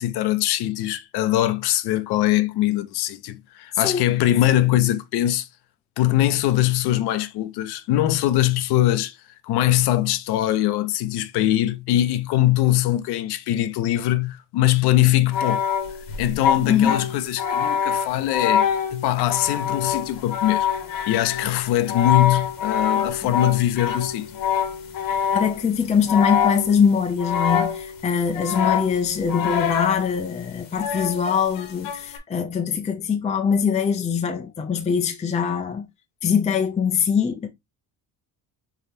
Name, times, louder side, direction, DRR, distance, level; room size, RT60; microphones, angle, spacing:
voice 1, 0.0-5.5 6.0-9.2 9.4-15.8 16.2-20.7 21.1-24.3, left 14 dB, 80° left, 0.7 m, -22 dB
sound 1, 15.3-25.7 26.1-26.9 27.2-28.0 28.3-30.0 30.8-32.2, left 8 dB, 60° left, 1.0 m, -25 dB
voice 2, 16.7-17.0 21.4-21.5 23.2-23.3 25.3-35.9 36.2-37.5, left 7 dB, 20° left, 0.5 m, -22 dB
4.6 x 3.4 x 2.6 m
cardioid pair, 105°, 39 cm